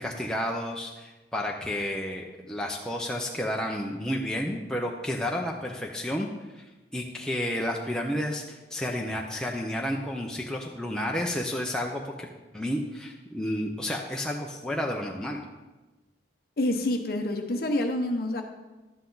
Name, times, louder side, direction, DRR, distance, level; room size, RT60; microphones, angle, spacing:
voice 1, 0.0-6.3 6.5-6.7 6.9-12.3 12.5-15.4, left 1 dB, 5° left, -1 dB, 0.6 m, -31 dB
voice 2, 16.6-18.4, left 1 dB, 55° left, 5 dB, 0.7 m, -27 dB
11.5 x 7.9 x 3.9 m, 1.2 s
head